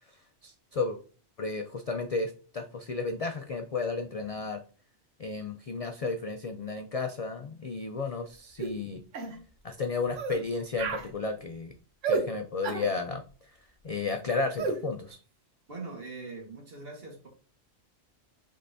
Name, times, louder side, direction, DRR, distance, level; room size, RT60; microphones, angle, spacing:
voice 1, 0.4-1.0 1.4-4.6 5.2-9.0 9.6-11.7 12.1-13.2 13.8-15.2, left 3 dB, 60° left, 5 dB, 0.3 m, -33 dB
sound 1, 8.6-8.8 9.1-9.4 10.1-10.4 10.8-11.1 12.0-12.3 12.6-12.9 14.6-14.8, right 4 dB, 90° right, 1.2 m, -30 dB
voice 2, 15.7-17.3, right 3 dB, 55° right, 1 dB, 1.7 m, -42 dB
5.4 x 3.8 x 2.6 m, 0.39 s
omnidirectional pair, 1.2 m